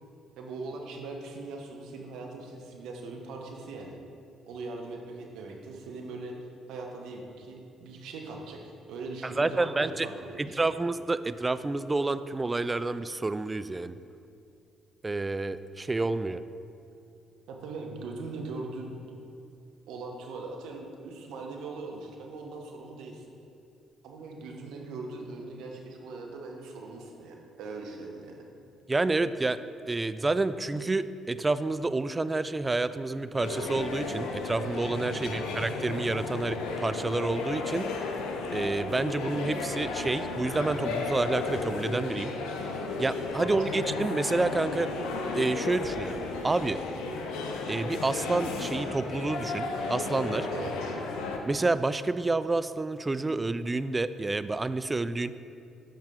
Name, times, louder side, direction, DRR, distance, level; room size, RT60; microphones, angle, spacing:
voice 1, 0.4-4.0 4.5-6.4 6.7-10.8 17.5-18.9 19.9-23.2 24.0-28.5 35.1-35.5 43.3-43.7 50.5-51.0, right 3 dB, 70° right, 1 dB, 0.9 m, -40 dB
voice 2, 9.2-10.1 10.4-14.0 15.0-16.4 28.9-29.6 29.9-37.8 38.5-42.3 43.0-44.9 45.3-46.8 47.7-50.5 51.5-55.3, right 3 dB, 25° right, 13 dB, 0.3 m, -29 dB
sound 1, 33.4-51.4, left 3 dB, 75° left, 0.7 m, -34 dB
8.6 x 5.5 x 3.7 m, 2.6 s
hypercardioid pair, 50°, 0 cm